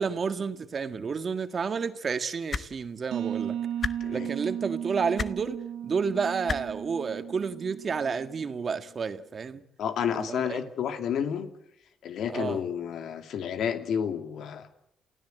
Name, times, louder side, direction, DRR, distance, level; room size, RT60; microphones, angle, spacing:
voice 1, 0.0-3.6 4.1-5.6 5.8-9.6 10.1-10.6 12.3-12.6, right 5 dB, 45° right, 10 dB, 1.8 m, -30 dB
sound 1, 2.5-2.7 3.8-3.9 5.2-5.3 6.5-6.6 7.8-7.9, left 5 dB, 45° left, 1.1 m, -30 dB
sound 2, 3.1-8.7, right 10 dB, 80° right, 1.6 m, -35 dB
voice 2, 4.0-4.3 9.8-11.5 12.0-14.7, left 8 dB, 75° left, 8 dB, 2.6 m, -30 dB
29.0 x 16.5 x 8.0 m, 0.77 s
cardioid pair, 90°, 0 cm